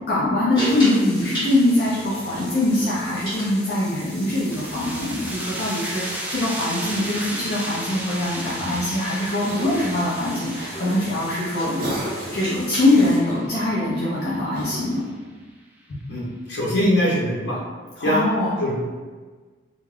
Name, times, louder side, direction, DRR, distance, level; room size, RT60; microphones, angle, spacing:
voice 1, 0.0-15.1 15.9-16.0 18.0-18.6, left 1 dB, 60° left, -8 dB, 0.5 m, -23 dB
sound 1, 0.5-13.2, equal, 25° left, 1.3 m, -35 dB
Cough, 2.3-3.1 4.4-5.6 6.8-7.3 8.1-9.0 9.4-10.0 10.6-10.8 11.8-12.5 12.9-13.7 14.5-15.1, right 1 dB, 55° right, 0.6 m, -37 dB
sound 2, 3.8-15.1, right 1 dB, 10° right, 0.3 m, -35 dB
voice 2, 16.1-17.6 18.0-18.2 18.6-18.9, equal, 90° left, -7 dB, 0.9 m, -22 dB
2.5 x 2.2 x 3.2 m, 1.4 s
head